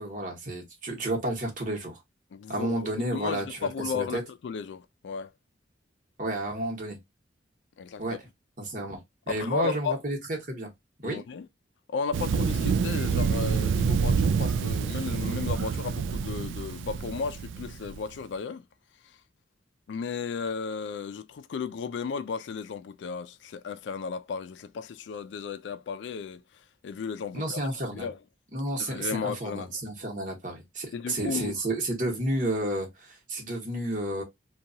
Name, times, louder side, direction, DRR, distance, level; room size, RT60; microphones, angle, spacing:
voice 1, 0.0-2.0 2.5-3.7 3.9-4.2 6.2-7.0 8.0-8.2 8.6-10.7 11.0-11.2 27.3-28.1 28.5-34.2, right 1 dB, 45° right, 1.0 m, -31 dB
voice 2, 2.3-5.3 7.8-8.0 9.3-10.0 11.0-11.5 11.9-18.6 19.9-26.4 26.8-27.6 27.9-28.2 28.8-29.7 30.9-31.6, left 5 dB, 70° left, 0.3 m, -34 dB
Thunder, 12.1-18.0, right 5 dB, 90° right, 0.3 m, -27 dB
2.8 x 2.3 x 2.6 m
head